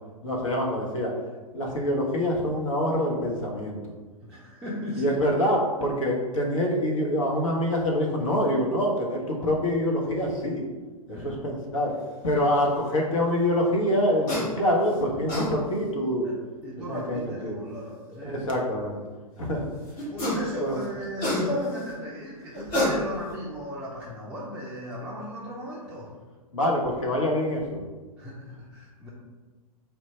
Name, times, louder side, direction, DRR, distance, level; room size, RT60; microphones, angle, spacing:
voice 1, 0.2-1.1 1.5-3.8 5.0-10.6 11.1-11.9 12.2-16.3 16.8-17.6 18.2-19.0 19.4-19.7 20.6-20.8 26.5-27.8, equal, 55° left, -1 dB, 1.0 m, -25 dB
voice 2, 4.2-5.2 11.1-11.4 12.4-12.5 16.2-16.3 16.6-18.5 20.1-26.1 28.2-29.1, equal, 5° right, -8 dB, 0.5 m, -36 dB
sound 1, 14.3-14.5 15.0-15.5 16.9-17.0 20.0-20.5 20.8-21.8 22.5-23.4, left 1 dB, 30° left, 1.2 m, -27 dB
4.3 x 2.3 x 4.2 m, 1.3 s
figure-of-eight pair, 105°, 19 cm